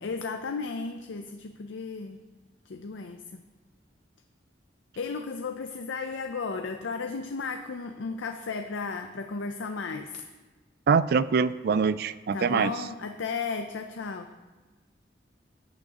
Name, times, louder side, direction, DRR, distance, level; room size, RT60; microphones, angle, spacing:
voice 1, 0.0-2.2 2.7-3.4 5.0-10.2 12.3-14.3, left 4 dB, 90° left, 6 dB, 0.5 m, -34 dB
voice 2, 10.9-12.7, right 5 dB, 55° right, 16 dB, 0.3 m, -24 dB
14.0 x 8.7 x 2.9 m, 1.2 s
head